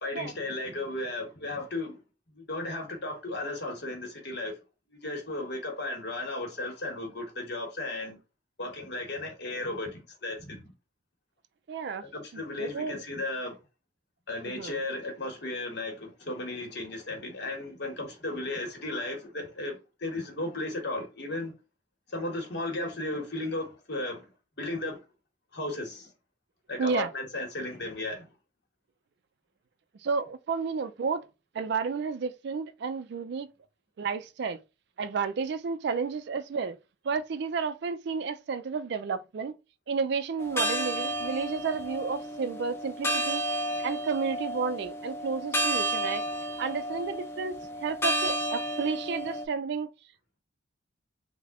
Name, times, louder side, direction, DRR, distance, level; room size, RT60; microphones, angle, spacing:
voice 1, 0.0-2.0 2.3-4.5 5.0-8.2 8.6-10.7 12.0-13.5 14.3-21.5 22.1-24.3 24.6-25.0 25.5-26.1 26.7-28.3, left 2 dB, 60° left, 1.2 m, -35 dB
voice 2, 11.7-12.0 12.6-12.9 14.5-14.8 26.8-27.1 30.0-31.3 31.5-33.5 34.0-34.6 35.0-36.8 37.0-39.5 39.9-43.4 43.8-46.2 46.6-49.9, right 5 dB, 60° right, 0.3 m, -31 dB
sound 1, 40.4-49.4, right 1 dB, 15° left, 0.5 m, -32 dB
3.3 x 2.1 x 3.6 m
head